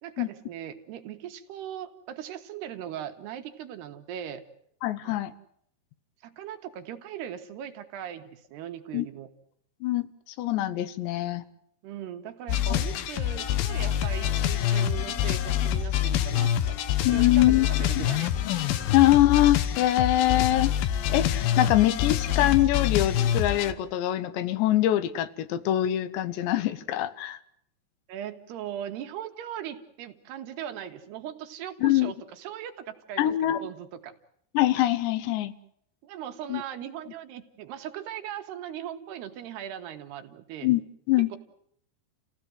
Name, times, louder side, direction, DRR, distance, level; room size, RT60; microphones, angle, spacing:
voice 1, 0.0-4.4 5.0-5.1 6.2-9.3 11.8-18.3 28.1-34.1 36.0-40.7 41.3-41.4, right 10 dB, 75° right, 6 dB, 3.4 m, -39 dB
voice 2, 4.8-5.3 8.9-9.1 9.8-11.4 17.0-17.7 18.0-18.1 18.9-27.4 31.8-32.1 33.2-33.7 34.5-35.5 36.5-36.6 40.6-40.8 41.1-41.4, left 14 dB, 85° left, 14 dB, 3.3 m, -24 dB
sound 1, 12.5-23.7, left 10 dB, 70° left, 2.6 m, -26 dB
29.0 x 16.5 x 7.8 m, 0.71 s
omnidirectional pair, 4.9 m